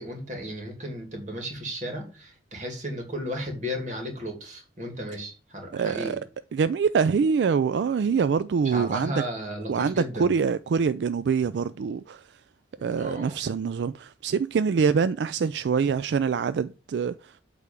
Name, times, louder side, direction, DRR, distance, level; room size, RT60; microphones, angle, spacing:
voice 1, 0.0-6.2 8.6-10.3 13.0-13.4, equal, 40° right, 2.3 m, -34 dB
voice 2, 5.7-6.2 6.5-9.2 9.7-12.4 12.8-17.4, right 6 dB, 75° right, 0.3 m, -25 dB
8.4 x 3.4 x 6.7 m
head